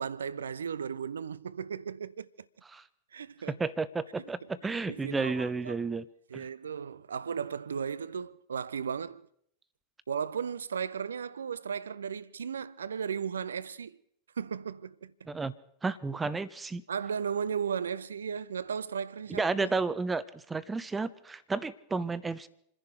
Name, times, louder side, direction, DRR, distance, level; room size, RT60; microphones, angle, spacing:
voice 1, 0.0-2.3 3.1-3.6 4.9-5.8 6.3-9.3 10.1-14.0 14.4-15.1 16.9-19.7, right 7 dB, 70° right, 0.6 m, -35 dB
voice 2, 3.5-6.1 6.3-6.5 15.3-15.5 15.8-16.8 19.3-22.5, right 4 dB, 15° right, 0.9 m, -32 dB
28.0 x 11.0 x 4.6 m
figure-of-eight pair, 90°, 0 cm